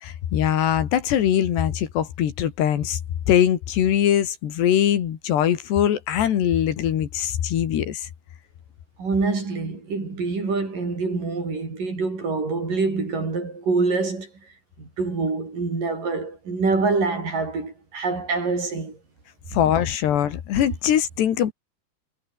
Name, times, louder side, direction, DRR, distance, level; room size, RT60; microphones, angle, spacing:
voice 1, 0.0-3.0 3.3-8.1 19.5-21.5, left 10 dB, 85° left, 4.5 m, -22 dB
voice 2, 9.0-14.3 14.8-19.0, right 3 dB, 55° right, 8.8 m, -25 dB
omnidirectional pair, 4.7 m